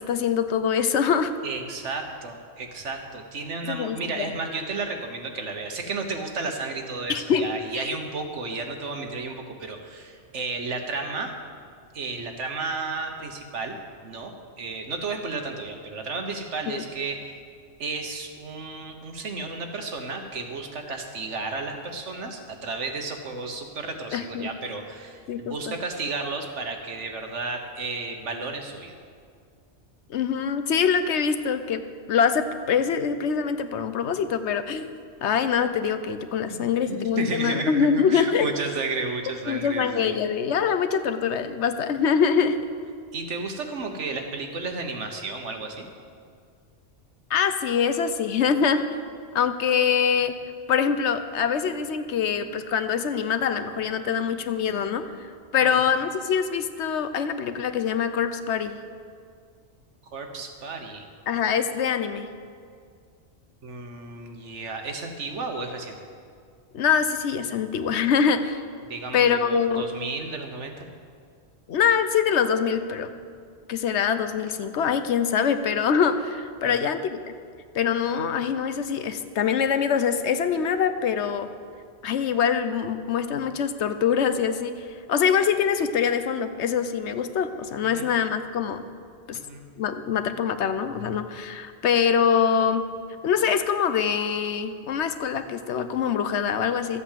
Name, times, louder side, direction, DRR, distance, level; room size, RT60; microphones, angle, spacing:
voice 1, 0.0-1.3 3.7-4.3 7.1-7.5 7.7-7.8 16.7-16.8 24.1-24.5 25.3-25.7 30.1-34.9 35.2-38.5 39.5-42.6 47.3-48.9 49.3-50.4 50.7-58.8 61.3-62.3 66.7-68.6 69.1-69.8 71.7-73.2 73.7-77.2 77.7-81.5 82.0-88.9 89.3-89.4 89.8-92.9 93.2-97.0, left 7 dB, 75° left, 10 dB, 1.0 m, -24 dB
voice 2, 1.4-11.3 11.9-13.8 14.0-17.2 17.8-28.9 36.5-40.2 43.1-45.9 55.6-55.8 60.1-61.1 63.6-66.0 68.9-70.9 76.6-76.8 87.9-88.1 89.3-89.6, right 3 dB, 90° right, 4 dB, 1.6 m, -33 dB
13.0 x 8.3 x 7.4 m, 2.2 s
omnidirectional pair, 1.2 m